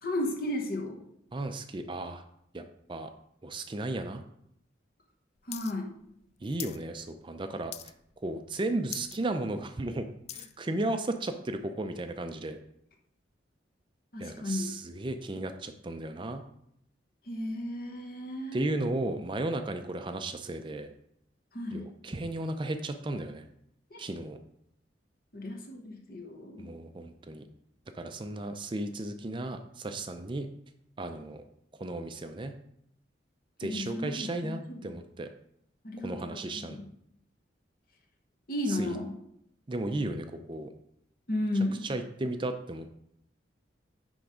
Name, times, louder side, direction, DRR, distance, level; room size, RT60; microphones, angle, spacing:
voice 1, 0.0-1.0 5.5-5.9 14.1-14.8 17.3-18.7 21.5-21.9 23.9-24.0 25.3-26.7 33.6-34.8 35.8-36.9 38.5-39.1 41.3-41.8, left 1 dB, 50° left, 3 dB, 1.2 m, -34 dB
voice 2, 1.3-2.2 2.5-3.1 3.4-4.2 6.4-7.7 8.2-10.1 10.3-12.6 14.2-16.4 18.5-20.9 21.7-23.4 24.0-24.4 26.6-27.4 27.9-30.5 31.0-31.4 31.8-32.5 33.6-35.3 36.0-36.8 38.7-39.0 39.7-40.7 41.8-42.9, right 2 dB, 25° right, 7 dB, 0.4 m, -34 dB
sound 1, 5.5-5.7 6.0-6.8 7.2-7.4 7.7-8.2 8.5-8.6 8.8-9.2 9.6-10.6 11.2-11.3, left 11 dB, 35° left, 0.3 m, -41 dB
10.0 x 3.4 x 5.0 m, 0.74 s
head